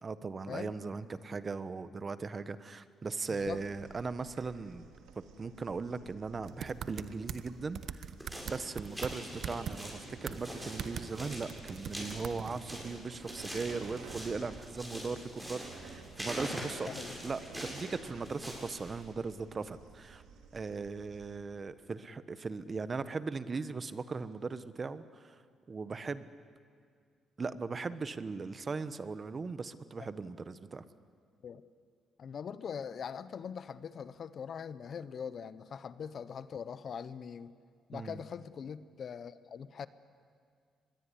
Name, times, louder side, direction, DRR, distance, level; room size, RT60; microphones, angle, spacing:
voice 1, 0.0-4.9 5.4-8.0 8.5-16.9 17.2-20.2 20.5-25.4 25.7-26.3 27.4-30.8 37.9-38.2, right 4 dB, 35° right, 13 dB, 1.1 m, -38 dB
voice 2, 3.3-3.6 9.5-9.7 16.9-17.1 30.0-30.1 31.4-31.6 32.2-37.5 37.9-39.9, left 7 dB, 55° left, 15 dB, 0.9 m, -42 dB
sound 1, 3.4-21.4, right 5 dB, 90° right, 2.9 m, -53 dB
sound 2, 6.5-7.5 7.7-9.1 9.4-9.9 10.3-10.4 10.8-11.1 11.3-12.6, right 8 dB, 60° right, 1.0 m, -40 dB
sound 3, 8.2-19.0, equal, 5° right, 7.9 m, -44 dB
24.5 x 21.0 x 9.9 m, 2.1 s
cardioid pair, 90°, 0 cm